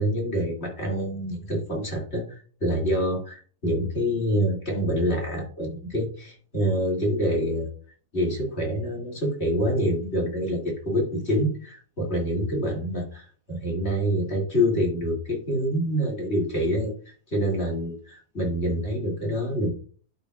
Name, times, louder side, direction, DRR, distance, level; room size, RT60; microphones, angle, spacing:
voice 1, 0.0-7.7 8.1-16.9 17.3-19.7, equal, 40° left, -2 dB, 2.8 m, -26 dB
11.0 x 4.7 x 2.4 m, 0.40 s
omnidirectional pair, 1.7 m